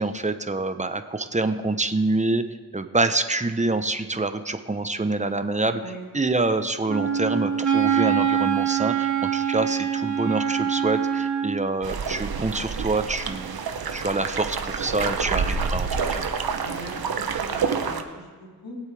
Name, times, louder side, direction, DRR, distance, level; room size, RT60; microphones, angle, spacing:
voice 1, 0.0-2.4 2.7-5.8 6.1-13.6 13.9-16.3, right 2 dB, 20° right, 9 dB, 1.0 m, -26 dB
Wind instrument woodwind instrument, 6.9-11.7, right 8 dB, 55° right, 2.3 m, -24 dB
sound 1, 11.8-18.0, right 5 dB, 80° right, 1.0 m, -28 dB
voice 2, 16.6-18.8, right 1 dB, 80° left, -5 dB, 3.6 m, -41 dB
22.0 x 8.1 x 3.5 m, 1.4 s
cardioid pair, 50°, 36 cm